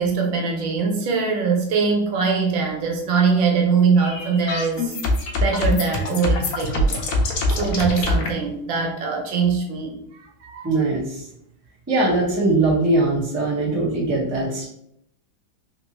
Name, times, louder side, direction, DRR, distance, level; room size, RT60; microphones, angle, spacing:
voice 1, 0.0-5.0 5.4-7.0 7.5-10.0 10.4-10.7, right 5 dB, 75° right, 1 dB, 1.3 m, -22 dB
sound 1, 4.0-8.3, left 1 dB, 90° left, 0.7 m, -23 dB
voice 2, 10.6-11.2 11.9-14.6, right 2 dB, 15° right, -5 dB, 0.5 m, -21 dB
3.5 x 2.8 x 2.9 m, 0.72 s
omnidirectional pair, 2.2 m